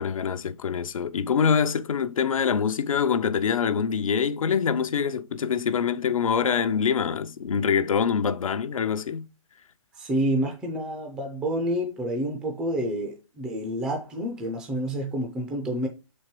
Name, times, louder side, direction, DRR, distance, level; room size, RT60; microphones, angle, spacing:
voice 1, 0.0-9.3, left 6 dB, 80° left, 0.7 m, -25 dB
voice 2, 10.0-15.9, right 1 dB, 5° right, 0.4 m, -28 dB
5.9 x 4.4 x 4.5 m
hypercardioid pair, 165°, 17 cm